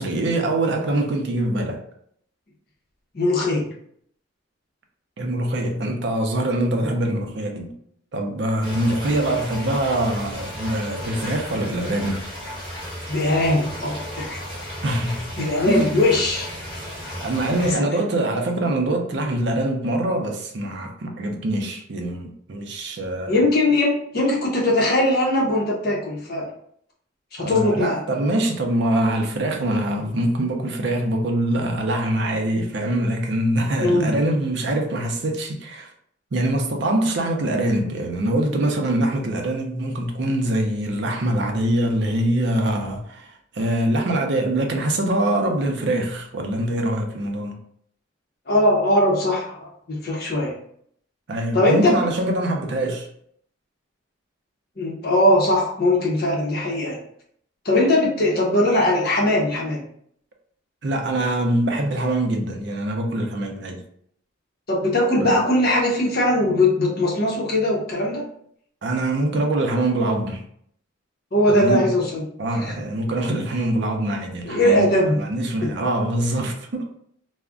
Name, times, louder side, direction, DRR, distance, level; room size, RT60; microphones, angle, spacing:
voice 1, 0.0-1.8 5.2-7.8 8.1-12.2 14.8-15.3 15.7-16.0 17.2-23.4 27.4-35.9 36.3-47.6 51.3-53.1 60.8-63.8 65.2-65.3 68.8-70.4 71.5-71.9 72.4-77.0, right 1 dB, 55° right, 0.5 m, -24 dB
voice 2, 3.1-3.6 6.8-6.9 9.1-9.3 13.1-14.4 15.4-16.5 17.6-17.7 23.3-26.5 27.3-28.0 33.8-34.1 48.5-50.5 51.5-51.9 54.8-57.0 57.6-59.8 64.7-68.2 71.3-72.2 72.5-72.7 74.5-75.2 75.6-75.7, left 1 dB, 50° left, 0.7 m, -20 dB
sound 1, 8.6-17.7, equal, 5° left, 1.2 m, -34 dB
2.4 x 2.1 x 3.5 m
head